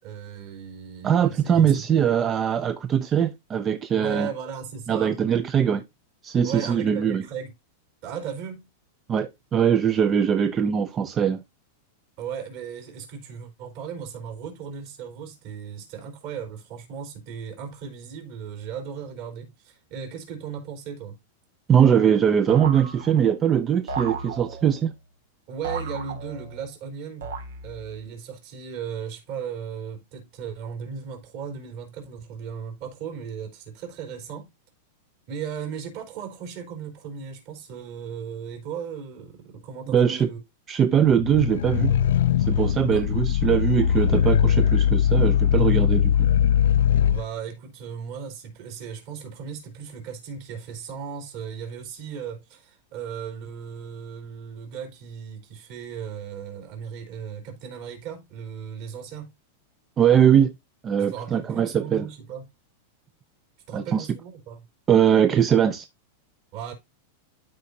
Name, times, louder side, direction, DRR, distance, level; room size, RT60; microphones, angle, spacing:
voice 1, 0.0-1.8 3.9-5.2 6.4-7.5 8.0-8.7 12.2-21.2 25.5-27.3 27.6-34.5 35.3-40.4 42.9-43.1 47.1-59.3 61.0-62.5 63.7-64.6 66.5-66.7, right 7 dB, 50° right, 3.8 m, -36 dB
voice 2, 1.0-4.3 4.9-5.8 6.2-7.2 9.1-11.4 21.7-24.9 39.9-40.3 40.7-41.9 42.5-46.2 60.0-60.5 60.8-62.1 63.7-64.1 64.9-65.9, right 8 dB, 20° right, 0.5 m, -21 dB
sound 1, 22.5-23.4 23.9-24.8 25.6-26.7 27.2-27.9, right 4 dB, 90° right, 2.2 m, -34 dB
sound 2, 41.1-47.2, left 9 dB, 85° left, 0.4 m, -20 dB
12.5 x 4.9 x 2.7 m
supercardioid pair, 155°, 0 cm